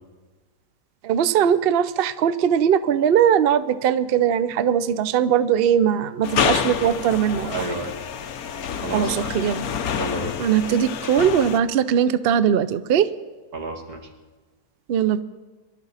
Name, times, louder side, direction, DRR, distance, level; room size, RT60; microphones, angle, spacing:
voice 1, 1.0-7.6 8.9-9.6 10.4-13.1 14.9-15.2, right 9 dB, 60° right, 14 dB, 0.6 m, -20 dB
sound 1, 6.2-11.6, left 7 dB, 75° left, 1.3 m, -27 dB
voice 2, 7.5-7.9 8.7-9.3 10.0-10.4 13.5-14.1, right 2 dB, 85° right, 3 dB, 2.1 m, -31 dB
23.5 x 12.0 x 4.1 m, 1.3 s
omnidirectional pair, 1.6 m